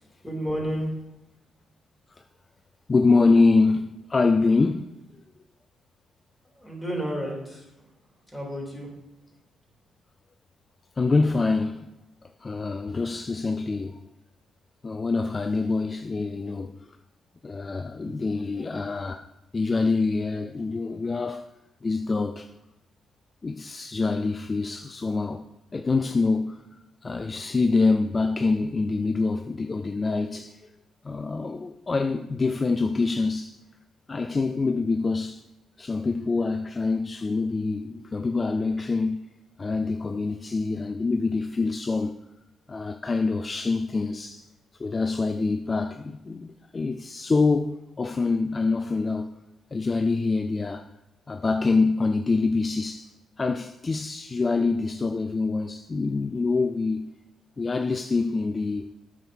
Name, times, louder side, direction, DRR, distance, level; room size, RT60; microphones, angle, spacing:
voice 1, 0.2-0.9 6.6-7.6 8.3-8.9 18.0-18.1, equal, ahead, 3.6 m, -31 dB
voice 2, 2.9-4.9 11.0-11.9 12.4-14.0 14.8-17.0 17.4-19.2 19.5-21.5 21.8-22.5 23.4-25.4 25.7-26.6 27.0-30.7 31.0-33.6 34.1-35.4 35.8-39.3 39.6-42.2 42.7-44.5 44.8-49.4 49.7-50.9 51.3-53.1 53.4-57.1 57.6-58.9, left 3 dB, 30° left, 0.4 m, -25 dB
9.0 x 6.2 x 5.6 m
cardioid pair, 90°, 0 cm